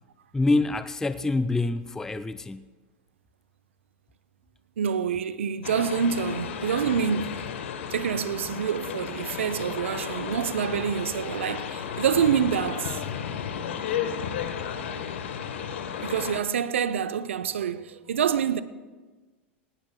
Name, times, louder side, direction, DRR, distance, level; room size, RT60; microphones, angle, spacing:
voice 1, 0.3-2.7, left 2 dB, 10° left, 0.4 m, -26 dB
voice 2, 4.8-7.5 7.9-13.0 16.0-18.6, right 7 dB, 80° right, 0.6 m, -27 dB
sound 1, 5.6-16.4, left 8 dB, 75° left, 1.1 m, -33 dB
18.5 x 17.5 x 2.2 m
hypercardioid pair, 95°, 7 cm